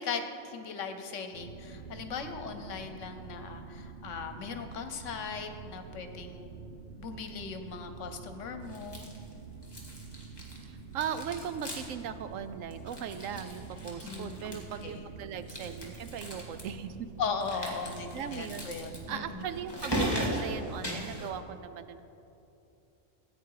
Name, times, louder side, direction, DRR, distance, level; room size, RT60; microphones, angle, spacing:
voice 1, 0.0-6.5 7.0-9.1 14.0-15.1 17.2-19.4, left 5 dB, 70° left, 7 dB, 1.2 m, -38 dB
sound 1, 1.3-21.3, right 5 dB, 55° right, 1.0 m, -47 dB
sound 2, 8.7-9.3 9.6-10.7 10.9-12.0 12.3-12.4 12.7-14.9 15.4-16.6 17.4-21.3, equal, 20° left, 2.0 m, -38 dB
voice 2, 10.7-17.1 17.6-22.0, right 8 dB, 80° right, 11 dB, 1.0 m, -39 dB
15.5 x 8.9 x 4.8 m, 2.9 s
omnidirectional pair, 1.4 m